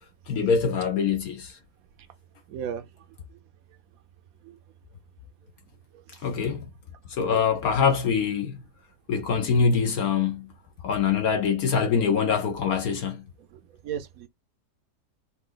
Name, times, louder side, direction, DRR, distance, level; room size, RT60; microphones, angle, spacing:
voice 1, 0.3-1.5 6.2-6.7 7.2-8.6 9.1-10.5 10.8-13.2, left 6 dB, 65° left, 1.1 m, -24 dB
voice 2, 2.5-3.4 4.4-4.6 5.9-6.2 7.1-7.5 9.2-9.3 13.4-14.3, right 8 dB, 65° right, 1.1 m, -38 dB
5.7 x 2.4 x 3.9 m
omnidirectional pair, 1.8 m